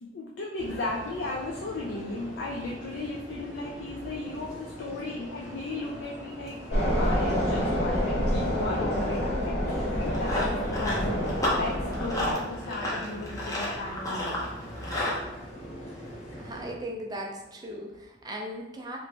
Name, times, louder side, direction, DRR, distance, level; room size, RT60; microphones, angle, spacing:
voice 1, 0.0-6.6 7.0-14.4, left 2 dB, 85° left, -2 dB, 0.4 m, -35 dB
sound 1, 0.6-16.7, equal, 40° left, 1.0 m, -43 dB
sound 2, 6.7-12.3, equal, 65° left, 1.1 m, -27 dB
Run, 9.9-15.2, left 1 dB, 20° left, 0.6 m, -32 dB
voice 2, 16.3-19.0, equal, 20° right, 0 dB, 0.4 m, -38 dB
3.0 x 2.5 x 3.3 m, 1.0 s
head